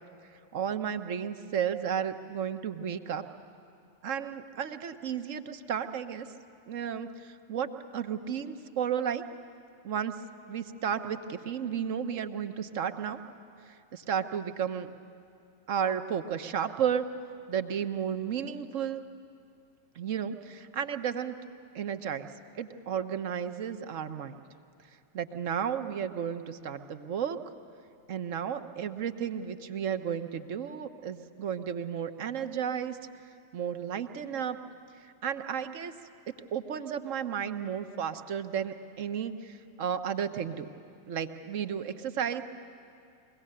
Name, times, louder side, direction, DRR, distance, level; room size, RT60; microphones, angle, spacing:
voice 1, 0.5-3.2 4.0-6.3 6.7-9.2 9.8-10.2 10.5-13.2 13.6-14.9 15.7-17.1 17.5-19.0 19.9-21.3 21.7-22.3 22.5-24.4 25.1-27.4 28.1-33.0 33.5-34.6 35.0-35.9 36.5-40.7 41.1-42.4, right 8 dB, 50° right, 9 dB, 1.0 m, -33 dB
23.5 x 17.0 x 6.8 m, 2.4 s
figure-of-eight pair, 90°, 0 cm